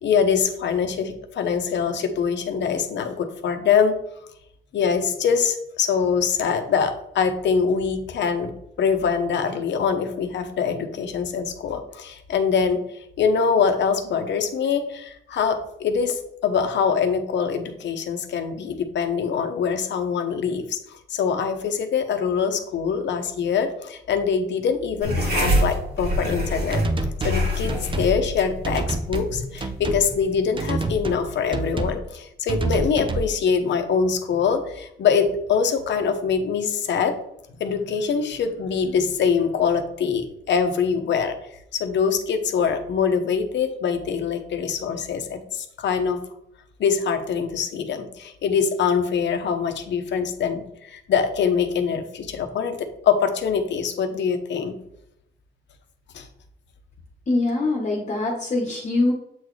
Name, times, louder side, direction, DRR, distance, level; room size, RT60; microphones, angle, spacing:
voice 1, 0.0-4.0 4.7-26.8 27.2-37.2 37.6-41.3 41.8-46.2 46.8-54.8 56.1-56.3, left 6 dB, 65° left, 7 dB, 0.9 m, -24 dB
sound 1, 25.0-31.9, equal, 55° right, 1.9 m, -27 dB
sound 2, 26.7-27.4 27.7-28.1 28.6-29.3 29.6-30.0 30.6-31.2 31.5-32.0 32.5-33.3, right 2 dB, 25° right, 0.7 m, -27 dB
voice 2, 57.3-59.1, left 2 dB, 35° left, 1 dB, 1.1 m, -23 dB
7.7 x 4.0 x 3.2 m, 0.77 s
cardioid pair, 90°, 20 cm